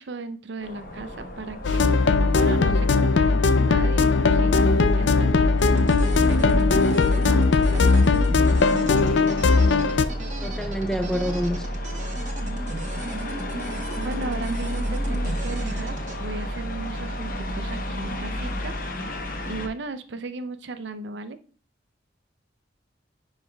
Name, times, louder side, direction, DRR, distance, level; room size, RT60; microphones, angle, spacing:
voice 1, 0.0-7.5 7.7-8.0 14.0-18.7 19.5-21.4, right 3 dB, 65° right, 0.5 m, -36 dB
sound 1, 0.6-19.7, equal, 50° left, 0.9 m, -32 dB
sound 2, 1.6-10.1, left 4 dB, 70° left, 0.4 m, -19 dB
sound 3, 5.6-16.2, right 1 dB, 40° right, 1.0 m, -37 dB
voice 2, 9.7-10.0 10.4-11.7, equal, 5° left, 0.4 m, -29 dB
9.9 x 4.7 x 2.2 m
head